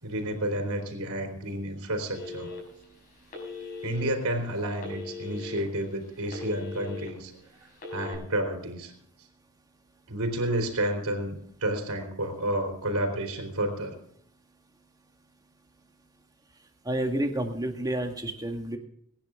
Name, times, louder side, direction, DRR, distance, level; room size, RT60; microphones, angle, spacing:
voice 1, 0.0-2.5 3.8-7.3 7.9-8.9 10.1-13.9, right 1 dB, 85° right, 3 dB, 3.4 m, -30 dB
Telephone, 2.1-2.8 3.3-4.1 4.8-5.6 6.0-7.1 7.7-8.1, left 4 dB, 40° left, 5.7 m, -39 dB
voice 2, 16.8-18.8, right 1 dB, 20° right, 4 dB, 1.8 m, -29 dB
23.0 x 10.0 x 3.7 m, 0.69 s
head